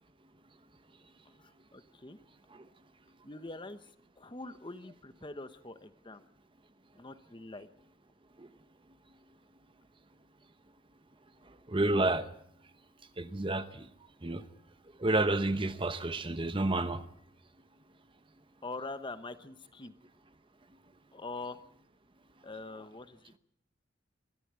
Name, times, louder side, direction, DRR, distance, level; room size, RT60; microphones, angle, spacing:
voice 1, 1.4-2.2 3.2-3.9 4.2-6.2 6.9-7.7 18.6-19.9 21.1-21.6 22.4-23.4, left 3 dB, 25° left, 11 dB, 1.0 m, -44 dB
voice 2, 11.7-12.3 13.2-13.9 14.2-14.4 15.0-17.0, right 2 dB, 25° right, 11 dB, 0.9 m, -30 dB
23.5 x 14.0 x 8.9 m, 0.72 s
head